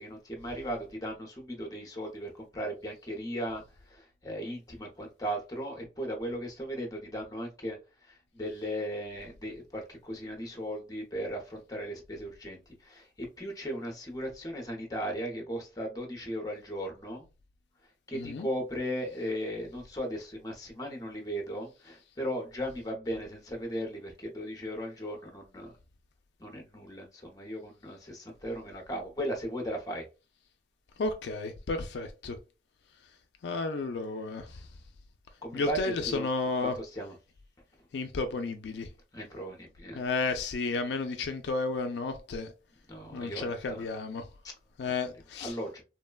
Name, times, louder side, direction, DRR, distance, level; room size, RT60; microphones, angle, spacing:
voice 1, 0.0-3.6 3.9-7.8 8.1-13.1 13.4-17.2 18.1-25.7 26.4-30.0 35.4-36.3 36.6-37.1 39.1-40.0 42.9-43.8 44.8-44.9 45.4-45.8, equal, 20° left, 0.7 m, -37 dB
voice 2, 18.1-18.5 31.0-32.4 33.4-34.7 35.5-36.7 37.9-38.9 39.9-42.5 43.1-44.3 44.8-45.6, left 3 dB, 70° left, 0.4 m, -32 dB
3.1 x 2.1 x 2.2 m
head